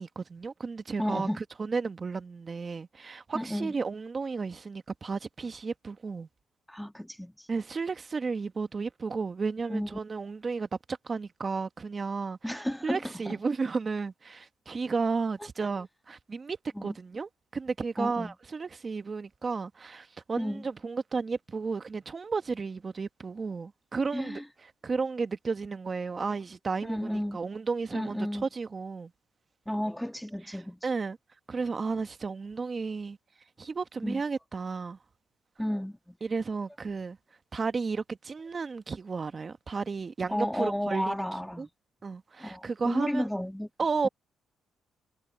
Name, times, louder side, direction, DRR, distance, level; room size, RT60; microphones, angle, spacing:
voice 1, 0.0-6.3 7.5-24.4 24.8-29.1 30.8-31.2 31.5-33.2 33.6-35.0 36.2-37.2 37.5-41.1 41.6-41.7 42.0-43.2 43.8-44.1, right 4 dB, 35° right, 1.3 m, -33 dB
voice 2, 1.0-1.4 3.3-3.7 6.7-7.5 9.7-10.0 12.4-13.4 15.4-15.5 16.7-16.9 18.0-18.3 20.4-20.6 24.1-24.4 26.8-27.4 27.9-28.4 29.6-30.8 34.0-34.2 35.6-36.2 40.3-41.7 42.4-43.7 44.0-44.1, equal, 5° left, 1.8 m, -32 dB
cardioid pair, 90°, 0 cm